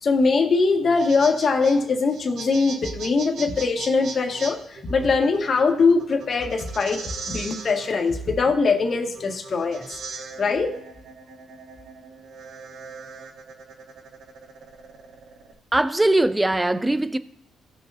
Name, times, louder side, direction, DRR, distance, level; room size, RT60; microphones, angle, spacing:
voice 1, 0.0-7.0 7.3-9.9 10.4-10.7, left 4 dB, 45° left, 1.9 m, -22 dB
sound 1, 0.8-15.5, right 4 dB, 65° right, 1.5 m, -39 dB
voice 2, 15.7-17.2, right 1 dB, 10° right, 0.6 m, -20 dB
17.5 x 6.7 x 2.8 m
cardioid pair, 90°, 0 cm